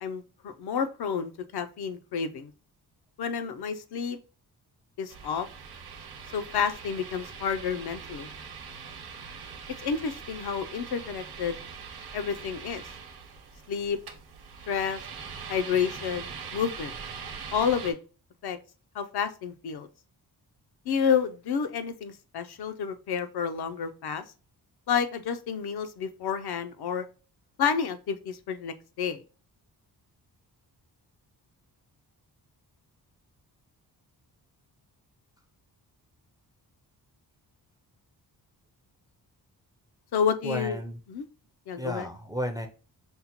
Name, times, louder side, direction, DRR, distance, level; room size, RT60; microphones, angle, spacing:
voice 1, 0.0-2.5 3.2-4.2 5.0-5.5 6.3-8.3 9.8-11.6 12.1-12.8 13.7-14.0 14.7-15.0 15.5-16.9 17.5-18.0 18.4-18.6 18.9-19.9 20.9-24.2 24.9-27.0 27.6-29.2 40.1-40.8 41.1-41.3 41.7-42.1, left 7 dB, 70° left, 9 dB, 0.6 m, -30 dB
sound 1, 5.1-17.9, right 6 dB, 65° right, 0.8 m, -42 dB
voice 2, 40.4-41.0 41.8-42.7, equal, 10° right, 5 dB, 0.3 m, -33 dB
5.4 x 2.1 x 2.9 m, 0.35 s
wide cardioid pair, 120°, 40 cm